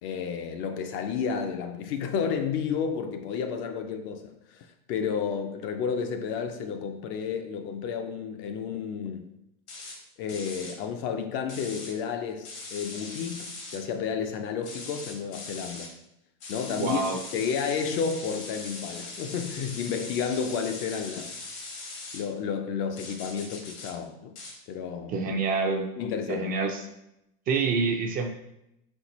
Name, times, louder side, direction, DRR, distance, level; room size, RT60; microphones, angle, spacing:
voice 1, 0.0-9.3 10.2-15.9 16.5-17.0 17.3-21.3 22.1-24.3 24.7-25.2 26.0-26.5, left 6 dB, 40° left, 0.4 m, -31 dB
sound 1, 9.7-10.0 10.3-10.8 11.5-11.9 12.4-13.8 14.6-15.9 16.4-22.2 23.0-23.9 24.4-24.5, left 3 dB, 85° left, 1.6 m, -40 dB
voice 2, 16.8-17.2 25.1-25.9 26.3-26.8 27.5-28.3, right 4 dB, 25° right, 0.4 m, -27 dB
4.3 x 3.7 x 2.9 m
supercardioid pair, 130°, 33 cm